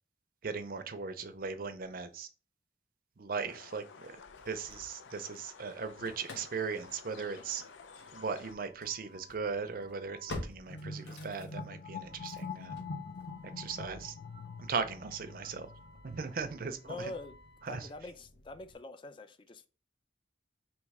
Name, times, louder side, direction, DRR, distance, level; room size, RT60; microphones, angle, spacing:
voice 1, 0.4-2.3 3.2-4.2 4.5-7.6 8.1-12.9 13.6-14.2 14.6-15.7 16.0-16.8 17.6-17.9, right 5 dB, 50° right, 0.5 m, -38 dB
sound 1, 3.5-8.5, left 5 dB, 85° left, 0.5 m, -53 dB
Engine starting / Slam, 4.0-5.4 5.7-18.8, left 2 dB, 70° left, 1.0 m, -50 dB
sound 2, 10.7-16.0, left 4 dB, 50° left, 0.7 m, -44 dB
voice 2, 16.8-17.4 17.7-19.7, left 2 dB, 25° left, 0.3 m, -44 dB
3.1 x 3.1 x 4.7 m
head